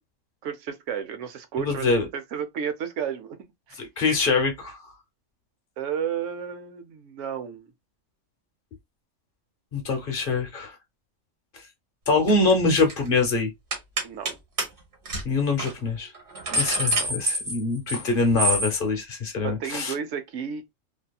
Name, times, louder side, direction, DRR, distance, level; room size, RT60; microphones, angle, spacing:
voice 1, 0.4-3.4 3.7-3.8 5.8-7.7 14.0-14.4 17.0-17.2 19.4-20.7, right 8 dB, 75° right, 0.9 m, -32 dB
voice 2, 1.6-2.1 3.8-4.8 9.7-10.8 12.1-13.5 15.2-16.1 16.5-19.9, left 3 dB, 45° left, 1.0 m, -24 dB
sound 1, 12.3-12.5 12.8-13.1 13.7-14.3 14.6-14.7 15.1-15.2 15.6-15.7 16.1-18.1 18.4-18.7, right 1 dB, 45° right, 1.2 m, -26 dB
2.8 x 2.7 x 2.3 m
omnidirectional pair, 1.3 m